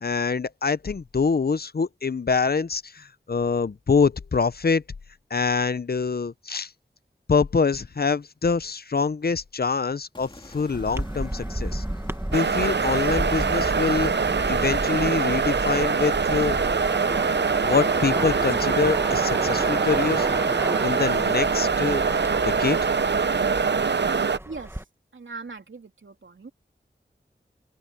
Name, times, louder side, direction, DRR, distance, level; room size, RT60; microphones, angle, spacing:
voice 1, 0.0-4.8 5.3-6.7 7.3-11.8 12.3-14.1 14.5-16.6 17.6-20.3 20.8-22.0 22.4-22.9, left 5 dB, 55° left, 0.6 m, -25 dB
sound 1, 10.1-16.4, left 1 dB, 25° left, 2.7 m, -50 dB
sound 2, 10.7-24.8, right 1 dB, 15° right, 1.5 m, -33 dB
sound 3, 12.3-24.4, right 5 dB, 65° right, 0.7 m, -23 dB
voice 2, 24.4-24.8 25.1-26.5, right 3 dB, 90° right, 3.3 m, -40 dB
open air
wide cardioid pair, 45°, 19 cm